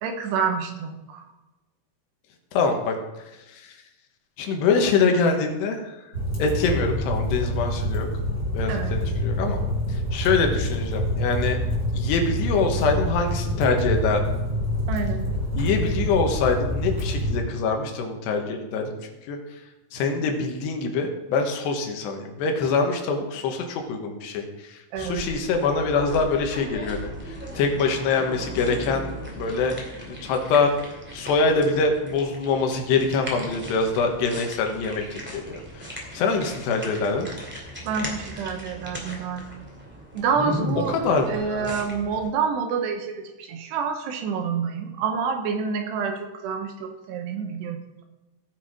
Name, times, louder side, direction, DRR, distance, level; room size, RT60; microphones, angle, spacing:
voice 1, 0.0-1.3 8.7-9.0 14.9-15.3 24.9-25.2 37.8-39.5 40.1-41.0 41.3-48.0, right 6 dB, 80° right, 5 dB, 3.0 m, -28 dB
voice 2, 2.5-3.0 3.5-3.7 4.4-6.0 6.4-8.1 8.5-9.6 9.9-11.6 11.9-14.2 15.6-18.9 19.3-19.4 19.9-29.8 30.1-37.3 40.9-41.7, left 4 dB, 75° left, 4 dB, 3.2 m, -24 dB
sound 1, 6.1-17.4, equal, 20° left, 3.8 m, -26 dB
sound 2, 24.9-42.3, equal, 10° right, 0.7 m, -37 dB
17.0 x 6.1 x 4.9 m, 1.1 s
omnidirectional pair, 5.1 m